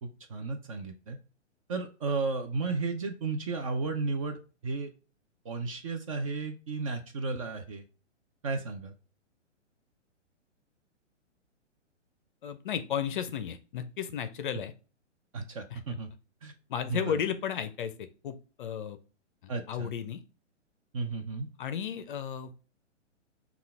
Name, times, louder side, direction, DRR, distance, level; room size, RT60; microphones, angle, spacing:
voice 1, 0.0-1.2 1.7-4.4 4.6-4.9 5.4-7.8 8.4-8.9 15.3-16.1 16.4-16.5 16.9-17.2 19.5-19.9 20.9-21.5, right 3 dB, 30° right, 6 dB, 0.4 m, -33 dB
voice 2, 12.4-14.7 15.7-16.0 16.7-19.0 19.4-20.2 21.6-22.5, left 8 dB, 45° left, 11 dB, 0.5 m, -34 dB
5.5 x 2.4 x 3.4 m, 0.35 s
figure-of-eight pair, 125°, 37 cm